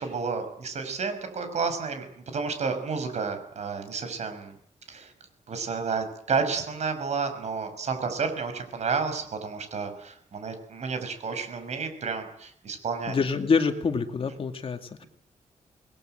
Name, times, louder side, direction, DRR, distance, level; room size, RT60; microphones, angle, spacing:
voice 1, 0.0-4.5 4.9-5.1 5.5-13.1, right 5 dB, 65° right, 8 dB, 6.0 m, -31 dB
voice 2, 13.1-15.0, left 5 dB, 45° left, 7 dB, 2.3 m, -26 dB
27.5 x 21.0 x 7.9 m, 0.68 s
wide cardioid pair, 145°, 13 cm